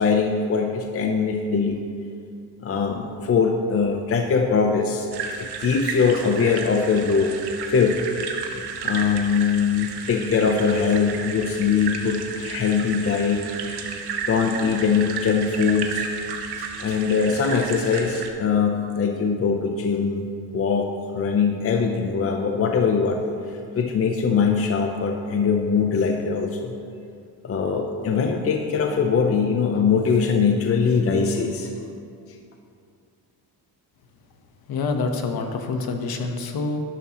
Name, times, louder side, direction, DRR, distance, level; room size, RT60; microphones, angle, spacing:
voice 1, 0.0-1.8 2.6-5.1 5.4-7.3 7.7-8.0 8.5-13.5 13.8-16.1 16.8-20.3 20.5-23.2 23.8-26.7 27.4-31.7, left 5 dB, 30° left, 3 dB, 0.7 m, -22 dB
sound 1, 5.1-18.3, right 5 dB, 60° right, 1.2 m, -33 dB
voice 2, 34.7-36.8, left 3 dB, 55° left, 4 dB, 1.2 m, -26 dB
11.5 x 11.5 x 3.0 m, 2.3 s
cardioid pair, 115°, 43 cm